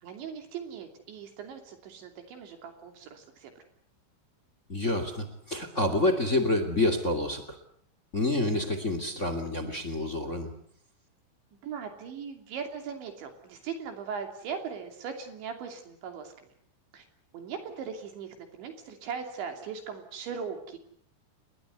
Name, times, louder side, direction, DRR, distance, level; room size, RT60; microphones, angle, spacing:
voice 1, 0.0-3.5 11.6-16.3 16.9-17.0 17.3-20.8, right 6 dB, 65° right, 6 dB, 5.0 m, -39 dB
voice 2, 4.7-7.6 8.1-10.5, left 2 dB, 25° left, 9 dB, 1.8 m, -28 dB
29.5 x 21.0 x 8.1 m, 0.62 s
omnidirectional pair, 5.6 m